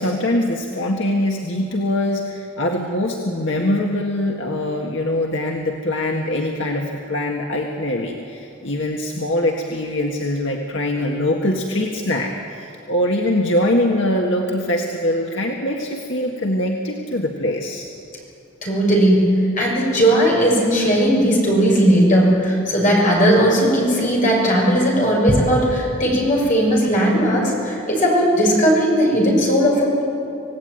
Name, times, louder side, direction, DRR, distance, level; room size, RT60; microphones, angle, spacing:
voice 1, 0.0-17.8, left 1 dB, 65° left, 0 dB, 1.8 m, -23 dB
voice 2, 18.6-30.0, equal, 40° left, -2 dB, 6.5 m, -17 dB
26.5 x 17.5 x 9.3 m, 2.7 s
head